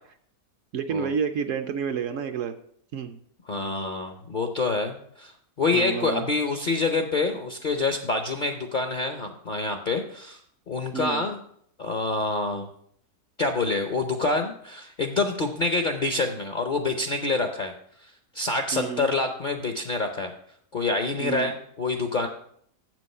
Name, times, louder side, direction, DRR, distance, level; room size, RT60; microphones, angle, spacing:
voice 1, 0.7-2.5 2.9-3.2 5.7-6.3 10.9-11.2 18.7-19.1 21.2-21.5, right 7 dB, 70° right, 8 dB, 0.8 m, -29 dB
voice 2, 3.5-5.3 5.6-10.4 10.7-11.4 11.8-12.7 13.4-17.7 18.0-18.1 18.3-20.3 20.7-22.3, left 3 dB, 50° left, 5 dB, 0.5 m, -26 dB
7.7 x 6.2 x 5.4 m, 0.66 s
omnidirectional pair, 1.6 m